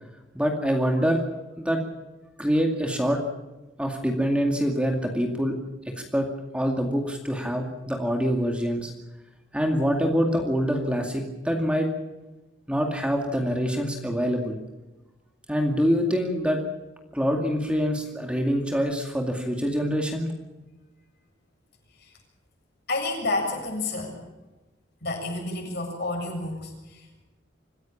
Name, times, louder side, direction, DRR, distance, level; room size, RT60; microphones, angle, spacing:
voice 1, 0.3-1.2 1.6-1.9 2.4-3.3 3.8-5.6 5.9-8.9 9.5-11.9 12.7-14.6 15.5-16.6 17.1-20.3, equal, 5° right, 2 dB, 2.2 m, -25 dB
voice 2, 22.9-24.2 25.0-27.2, left 2 dB, 55° left, 1 dB, 7.5 m, -30 dB
26.0 x 16.0 x 7.2 m, 1.1 s
head